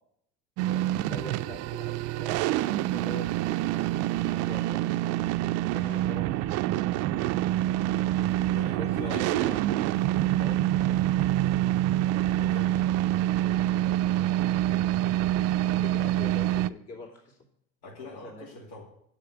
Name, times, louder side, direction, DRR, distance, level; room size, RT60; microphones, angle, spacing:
sound 1, 0.6-16.7, right 14 dB, 55° right, 0.4 m, -26 dB
voice 1, 0.7-4.8 5.7-6.6 8.5-9.6 10.4-11.0 13.7-14.0 15.6-17.4 18.0-18.4, left 2 dB, 55° left, 0 dB, 3.1 m, -44 dB
voice 2, 8.5-9.6 12.4-13.0 17.8-18.8, left 2 dB, 80° left, -3 dB, 2.6 m, -42 dB
7.3 x 6.9 x 8.0 m, 0.72 s
cardioid pair, 125°, 30 cm